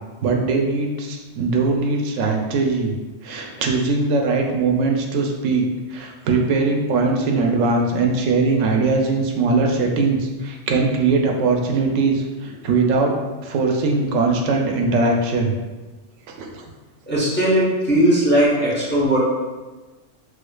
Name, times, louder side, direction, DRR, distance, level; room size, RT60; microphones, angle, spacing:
voice 1, 0.2-2.9 3.2-13.2 13.4-15.5 16.3-16.5, right 3 dB, 90° right, 2 dB, 0.9 m, -20 dB
voice 2, 17.1-19.2, right 1 dB, 10° left, -7 dB, 0.6 m, -18 dB
4.8 x 2.1 x 2.2 m, 1.2 s
omnidirectional pair, 1.3 m